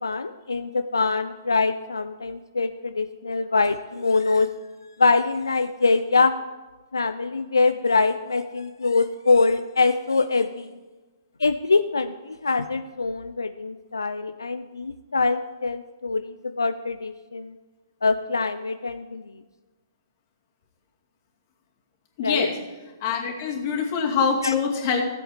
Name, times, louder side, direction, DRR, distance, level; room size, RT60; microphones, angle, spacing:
voice 1, 0.0-4.5 5.0-6.3 6.9-10.7 11.4-17.6 18.0-19.3 22.2-22.5 24.4-24.5, left 4 dB, 90° left, 10 dB, 0.4 m, -24 dB
voice 2, 22.2-22.6 23.0-25.0, left 6 dB, 45° left, 1 dB, 2.4 m, -24 dB
15.0 x 7.8 x 4.9 m, 1.2 s
hypercardioid pair, 125°, 2 cm